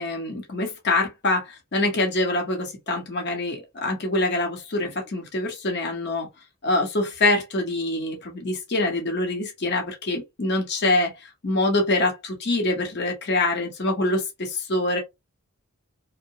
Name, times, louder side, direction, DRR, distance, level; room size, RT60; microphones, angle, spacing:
voice 1, 0.0-6.3 6.6-15.0, left 2 dB, 50° left, 0.8 m, -25 dB
2.7 x 2.1 x 2.7 m
head